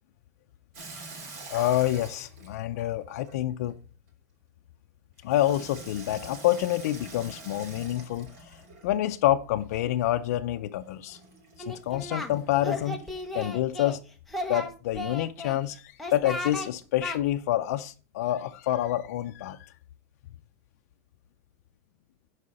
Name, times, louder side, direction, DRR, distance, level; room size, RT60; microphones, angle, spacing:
Water tap faucet / Sink (filling or washing), 0.7-3.7 5.3-9.0 11.0-13.5, right 3 dB, 60° right, 3.1 m, -46 dB
voice 1, 1.5-3.8 5.2-8.3 8.8-11.2 11.6-13.0 13.3-14.0 14.5-19.7, left 13 dB, 60° left, 0.5 m, -27 dB
Singing, 11.6-12.3 12.6-14.0 14.3-15.6 16.0-16.7 17.0-17.2, left 1 dB, ahead, 0.8 m, -35 dB
11.5 x 4.8 x 4.1 m
supercardioid pair, 170°, 9 cm